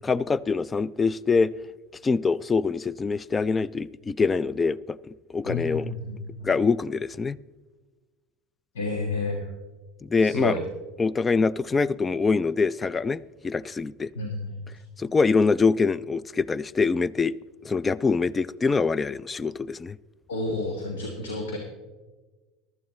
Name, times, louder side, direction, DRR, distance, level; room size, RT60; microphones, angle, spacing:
voice 1, 0.0-1.5 2.0-5.0 5.3-5.9 6.4-7.4 10.0-10.6 11.0-14.1 15.0-17.3 17.6-20.0, left 4 dB, 20° left, 0.4 m, -24 dB
voice 2, 5.5-6.5 8.8-9.5 10.2-10.6 14.2-14.6 20.3-21.6, left 2 dB, 90° left, 1.6 m, -30 dB
15.0 x 12.0 x 3.1 m
hypercardioid pair, 90°, 0 cm